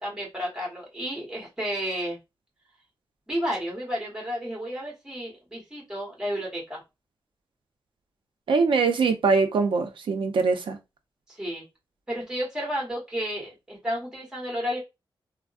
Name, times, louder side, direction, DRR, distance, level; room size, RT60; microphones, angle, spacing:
voice 1, 0.0-2.2 3.3-6.8 11.3-11.6 12.1-14.8, equal, 10° right, 1.4 m, -32 dB
voice 2, 8.5-10.8, right 4 dB, 90° right, 0.5 m, -22 dB
3.4 x 2.0 x 2.3 m
wide cardioid pair, 165°, 8 cm